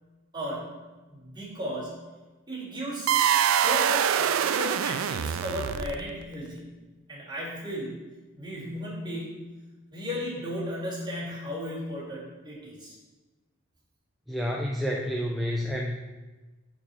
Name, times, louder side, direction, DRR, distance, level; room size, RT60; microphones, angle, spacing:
voice 1, 0.3-0.7 1.1-1.9 2.5-6.6 7.1-8.0 8.4-9.4 9.9-12.9, equal, 20° right, -7 dB, 2.4 m, -35 dB
sound 1, 3.1-6.2, right 9 dB, 75° right, 0.3 m, -24 dB
voice 2, 14.3-16.0, equal, ahead, -1 dB, 0.4 m, -29 dB
5.8 x 4.6 x 5.5 m, 1.2 s
head